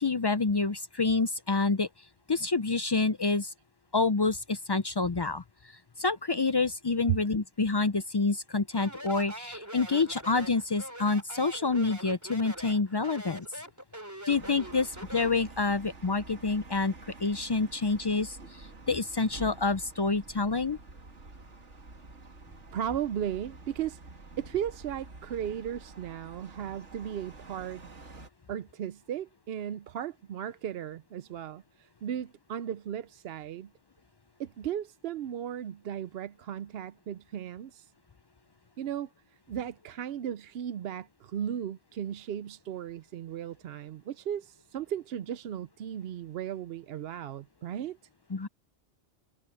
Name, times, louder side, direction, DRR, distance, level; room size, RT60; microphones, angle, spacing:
voice 1, 0.0-1.9 2.3-3.5 3.9-5.4 6.0-13.5 14.3-16.9 17.2-20.8 48.3-48.5, left 3 dB, 40° left, 0.3 m, -28 dB
Speech, 8.7-15.4, right 1 dB, 15° right, 3.2 m, -43 dB
sound 1, 14.3-28.3, right 3 dB, 90° right, 2.7 m, -48 dB
voice 2, 22.7-24.0 24.4-27.8 28.5-33.7 34.4-37.9 38.8-39.1 39.5-48.0, right 10 dB, 65° right, 0.8 m, -36 dB
omnidirectional pair, 1.2 m